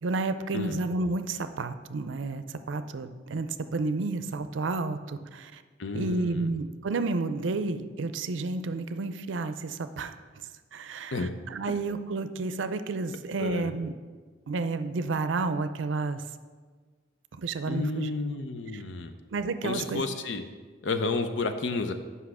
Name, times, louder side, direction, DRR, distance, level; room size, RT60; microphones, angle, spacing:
voice 1, 0.0-5.6 5.9-10.2 10.7-13.9 14.5-16.2 17.3-18.1 18.7-18.8 19.3-20.0, right 3 dB, 85° right, 11 dB, 0.5 m, -31 dB
voice 2, 5.8-6.4 11.1-11.3 13.4-13.7 17.7-19.1 19.6-20.4 20.8-21.9, left 3 dB, 80° left, 8 dB, 0.7 m, -31 dB
8.2 x 5.7 x 4.8 m, 1.5 s
head